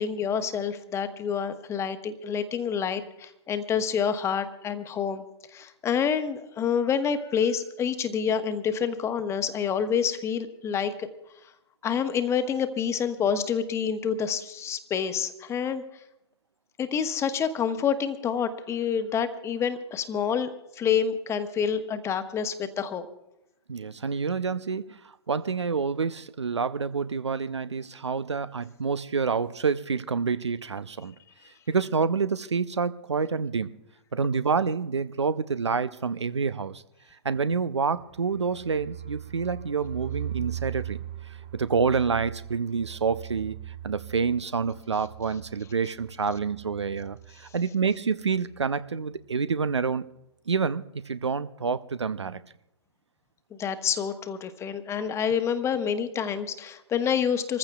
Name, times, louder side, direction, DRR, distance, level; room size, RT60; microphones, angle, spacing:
voice 1, 0.0-5.2 5.5-11.1 11.8-15.8 16.8-23.1 53.5-57.6, left 7 dB, 20° left, 1.1 m, -28 dB
voice 2, 23.7-31.1 31.7-33.7 34.1-36.8 37.2-41.0 41.5-50.1 50.5-52.4, right 5 dB, 80° right, 0.5 m, -28 dB
sound 1, 37.9-47.6 47.8-47.9 48.2-48.7, right 11 dB, 45° right, 2.4 m, -40 dB
26.5 x 14.5 x 2.3 m
figure-of-eight pair, 110°, 14 cm